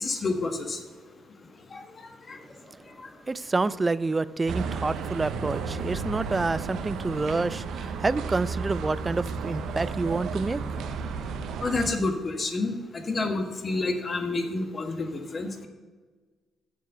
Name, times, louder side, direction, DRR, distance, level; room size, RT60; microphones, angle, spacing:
voice 1, 0.0-0.8 2.3-2.4 11.6-12.7 13.1-15.1 15.3-15.7, left 3 dB, 40° left, 1.4 m, -28 dB
voice 2, 3.3-10.6, right 3 dB, 25° right, 0.4 m, -28 dB
sound 1, 4.5-11.9, right 5 dB, 80° right, 0.8 m, -33 dB
7.6 x 7.0 x 6.9 m
cardioid pair, 90°, 0 cm